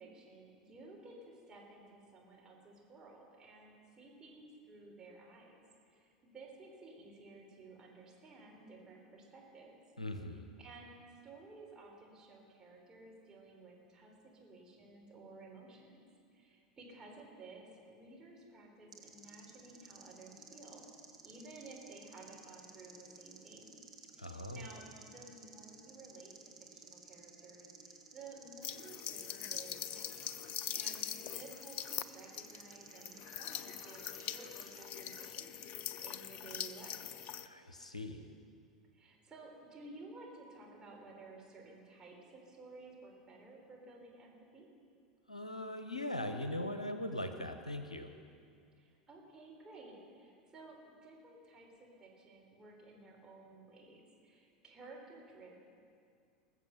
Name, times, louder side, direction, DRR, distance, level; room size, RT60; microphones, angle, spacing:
voice 1, 0.0-5.6 5.9-9.8 10.6-16.0 16.3-20.8 21.2-23.8 24.1-26.3 26.7-37.0 38.9-44.7 48.8-50.8 51.0-55.5, right 3 dB, 20° right, -2 dB, 3.7 m, -55 dB
voice 2, 10.0-10.5 24.2-24.7 37.5-38.3 45.3-48.1, left 1 dB, 85° left, 7 dB, 0.8 m, -40 dB
sound 1, 18.9-35.3, right 3 dB, 85° right, 1.3 m, -56 dB
sound 2, 28.6-37.5, left 10 dB, 40° left, 0.5 m, -43 dB
20.0 x 7.4 x 6.9 m, 2.4 s
figure-of-eight pair, 80°, 3 cm